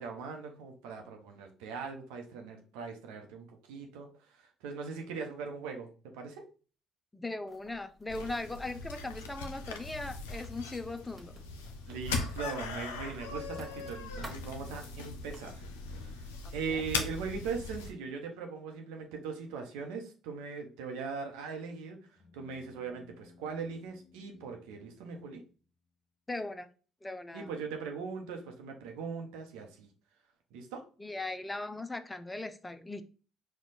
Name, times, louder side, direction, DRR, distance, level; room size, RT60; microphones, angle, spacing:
voice 1, 0.0-6.4 11.9-15.6 15.9-22.0 22.3-25.4 27.3-29.9 30.5-30.8, right 5 dB, 75° right, 3 dB, 0.8 m, -40 dB
voice 2, 7.1-11.3 16.7-16.8 26.3-26.7 27.0-27.5 31.0-33.0, left 2 dB, 15° left, 10 dB, 0.5 m, -39 dB
Writing, 7.5-15.4, right 1 dB, 30° right, 1.5 m, -56 dB
sound 1, 8.1-17.9, left 4 dB, 80° left, 0.5 m, -40 dB
sound 2, 22.2-25.9, left 4 dB, 55° left, 1.0 m, -61 dB
4.4 x 2.3 x 4.0 m, 0.37 s
hypercardioid pair, 55°, 0 cm